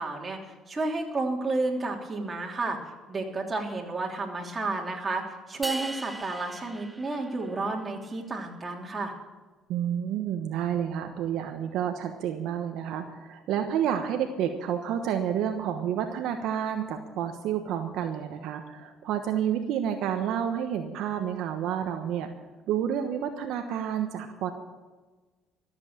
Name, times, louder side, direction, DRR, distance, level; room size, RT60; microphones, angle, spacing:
voice 1, 0.0-2.8 3.1-9.1, right 3 dB, 30° right, 1 dB, 3.1 m, -31 dB
sound 1, 5.6-7.9, right 1 dB, 5° right, 0.8 m, -39 dB
voice 2, 9.7-22.3 22.7-24.5, right 9 dB, 75° right, 5 dB, 1.1 m, -30 dB
13.5 x 8.0 x 8.8 m, 1.3 s
supercardioid pair, 80°, 0 cm